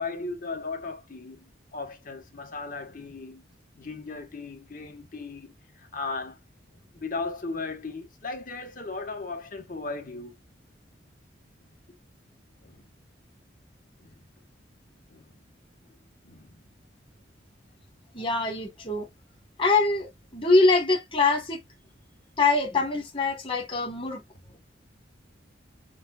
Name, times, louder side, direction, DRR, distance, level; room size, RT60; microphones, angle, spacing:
voice 1, 0.0-3.4 3.8-6.4 6.9-10.4 12.6-12.9 14.0-14.2 15.1-15.4 16.2-16.6, left 3 dB, 45° left, 1.5 m, -37 dB
voice 2, 18.1-19.1 19.6-21.6 22.4-24.2, left 3 dB, 30° left, 1.9 m, -24 dB
7.3 x 2.8 x 2.6 m
head